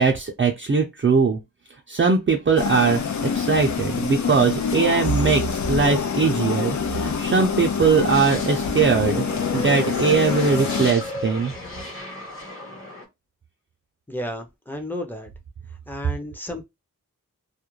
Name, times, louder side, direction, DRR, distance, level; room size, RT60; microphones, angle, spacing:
voice 1, 0.0-1.4 1.9-11.5, right 5 dB, 35° right, 0.5 m, -21 dB
sound 1, 2.6-10.9, left 6 dB, 55° left, 0.5 m, -26 dB
sound 2, 2.9-11.7, right 8 dB, 85° right, 0.7 m, -37 dB
sound 3, 8.0-13.0, left 2 dB, 35° left, 1.1 m, -33 dB
voice 2, 14.1-15.3 15.9-16.6, left 1 dB, 5° left, 0.6 m, -32 dB
2.4 x 2.1 x 3.0 m
wide cardioid pair, 65°, 34 cm